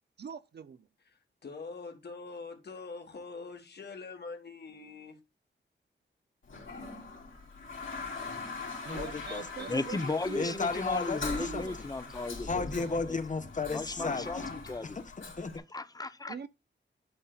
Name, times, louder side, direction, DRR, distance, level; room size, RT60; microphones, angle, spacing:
voice 1, 0.2-0.9 8.8-10.6 11.3-11.8 16.3-16.5, right 6 dB, 55° right, 0.5 m, -43 dB
voice 2, 1.0-5.2, left 4 dB, 55° left, 1.4 m, -44 dB
Toilet flush, 6.5-15.6, left 4 dB, 75° left, 2.8 m, -41 dB
voice 3, 8.9-9.7 10.3-11.9 12.4-14.4 14.8-15.6, left 4 dB, 40° left, 1.0 m, -34 dB
voice 4, 9.7-13.2 13.7-15.0 15.5-16.4, left 3 dB, 20° left, 0.6 m, -36 dB
11.0 x 5.6 x 2.3 m
wide cardioid pair, 115°, 20 cm